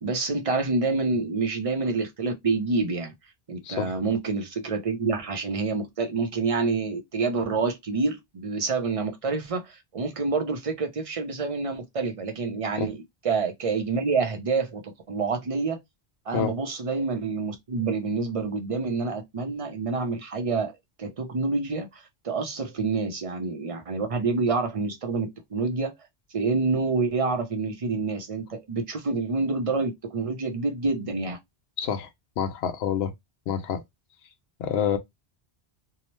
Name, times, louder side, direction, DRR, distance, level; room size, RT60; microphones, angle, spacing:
voice 1, 0.0-3.1 3.5-14.8 15.1-15.8 16.3-25.9 26.3-31.4, right 4 dB, 40° right, 0.6 m, -27 dB
voice 2, 31.8-32.1 32.4-33.1 33.5-33.8 34.6-35.0, left 8 dB, 70° left, 0.8 m, -27 dB
2.8 x 2.1 x 3.0 m
omnidirectional pair, 1.1 m